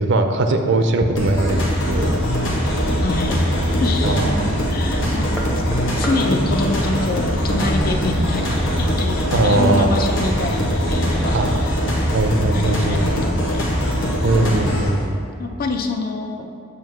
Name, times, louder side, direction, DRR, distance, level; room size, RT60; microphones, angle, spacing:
voice 1, 0.0-2.1 4.0-4.5 5.0-5.3 5.9-6.0 9.3-9.9 11.3-13.0 14.2-15.2, right 2 dB, 60° right, 6 dB, 0.5 m, -20 dB
sound 1, 1.2-14.9, equal, 80° left, 1.1 m, -22 dB
sound 2, 1.9-15.1, equal, 25° left, 1.1 m, -28 dB
voice 2, 3.0-3.4 3.8-4.4 4.7-5.3 6.0-10.6 10.9-11.7 12.5-13.7 14.4-14.7 15.4-16.5, left 2 dB, 45° left, 4 dB, 0.5 m, -26 dB
sound 3, 5.3-10.0, equal, 5° left, 0.6 m, -39 dB
7.4 x 2.8 x 5.9 m, 2.3 s
head